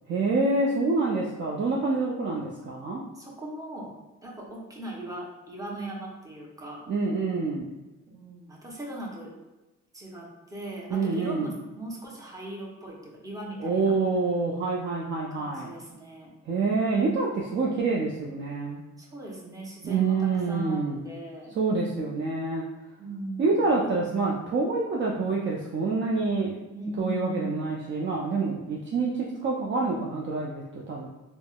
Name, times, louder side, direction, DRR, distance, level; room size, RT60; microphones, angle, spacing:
voice 1, 0.1-3.0 6.9-7.7 10.9-11.5 13.6-15.7 16.5-18.8 19.8-21.1 21.6-22.6 23.4-26.5 27.0-31.1, right 3 dB, 40° right, -3 dB, 0.4 m, -27 dB
voice 2, 3.1-3.9 4.2-6.8 8.1-9.3 9.9-13.9 15.3-16.3 19.0-21.5 23.0-23.6 26.7-27.7, right 2 dB, 10° right, -3 dB, 0.7 m, -39 dB
3.4 x 2.0 x 2.2 m, 1.1 s
cardioid pair, 90°, 30 cm